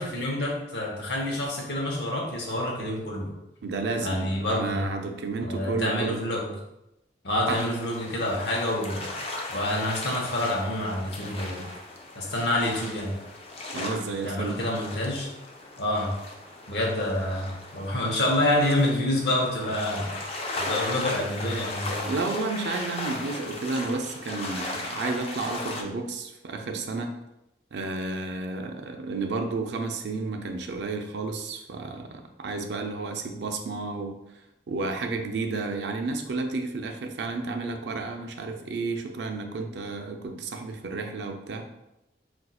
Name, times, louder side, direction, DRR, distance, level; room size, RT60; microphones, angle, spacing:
voice 1, 0.0-3.3 4.0-4.9 5.4-6.5 7.2-9.1 9.5-11.7 12.2-13.2 14.2-15.3 15.8-16.1 16.7-20.1 20.6-22.1, left 1 dB, 75° left, -2 dB, 0.8 m, -27 dB
voice 2, 3.6-6.2 7.5-7.6 13.7-14.6 22.1-27.1 27.7-34.2 34.7-41.7, right 3 dB, 80° right, 4 dB, 0.4 m, -31 dB
sound 1, 7.5-25.8, left 2 dB, 35° left, 0.3 m, -37 dB
4.1 x 2.3 x 2.3 m, 0.89 s
head